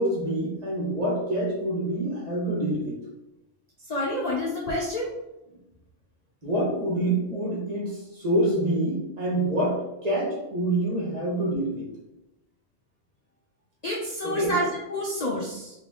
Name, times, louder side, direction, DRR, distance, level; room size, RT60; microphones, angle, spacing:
voice 1, 0.0-3.0 6.4-11.9 14.2-14.6, right 1 dB, 35° right, -4 dB, 1.3 m, -26 dB
voice 2, 3.9-5.1 13.8-15.7, left 1 dB, 45° left, -3 dB, 0.6 m, -29 dB
3.4 x 2.9 x 3.7 m, 0.92 s
omnidirectional pair, 1.3 m